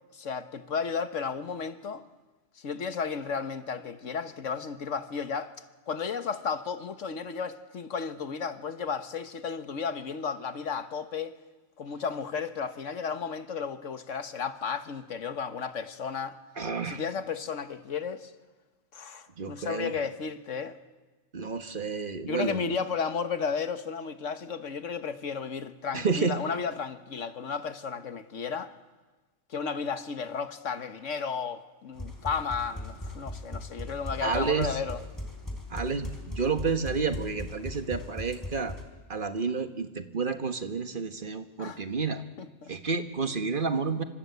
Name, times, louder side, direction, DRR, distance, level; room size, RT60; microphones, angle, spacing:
voice 1, 0.1-2.0 2.6-5.5 5.9-11.4 11.8-16.4 16.8-18.3 18.9-20.8 22.2-28.7 29.5-35.0 41.6-41.8 42.4-42.7, left 6 dB, 90° left, 1.6 m, -33 dB
voice 2, 16.6-17.0 19.4-19.9 21.3-22.8 25.9-26.3 34.2-34.7 35.7-38.8 39.1-42.2 42.7-44.0, right 5 dB, 45° right, 1.6 m, -30 dB
sound 1, 32.0-38.8, left 1 dB, 15° left, 3.9 m, -39 dB
27.0 x 25.5 x 8.2 m
omnidirectional pair, 1.3 m